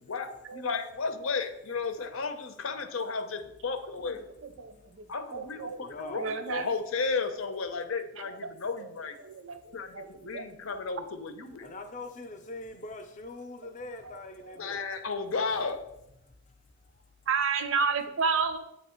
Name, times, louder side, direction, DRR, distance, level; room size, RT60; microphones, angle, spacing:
voice 1, 0.0-4.3 5.1-9.2 9.7-11.7 14.5-15.9, left 4 dB, 80° left, 0.7 m, -34 dB
voice 2, 4.6-5.0 5.3-5.8 6.1-6.7 9.2-9.6 9.9-10.4 10.7-10.8 14.0-14.1 14.4-14.9 17.3-18.6, right 5 dB, 75° right, 0.6 m, -31 dB
voice 3, 5.9-6.2 11.6-14.8, left 2 dB, 35° left, 0.6 m, -42 dB
8.2 x 3.0 x 4.4 m
head